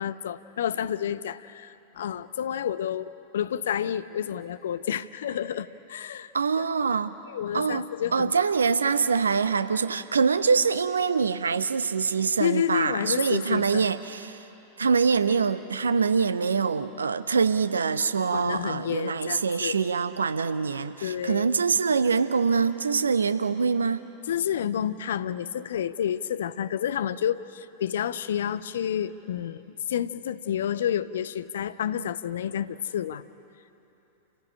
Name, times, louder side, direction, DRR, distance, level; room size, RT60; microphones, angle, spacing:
voice 1, 0.0-6.3 6.6-6.7 7.3-8.3 12.4-13.9 18.3-19.8 21.0-21.5 24.3-33.2, left 9 dB, 60° left, 15 dB, 0.7 m, -30 dB
voice 2, 6.3-7.1 7.5-14.4 14.8-24.1, right 5 dB, 75° right, 13 dB, 0.9 m, -24 dB
29.0 x 16.0 x 10.0 m, 3.0 s
figure-of-eight pair, 90°, 0 cm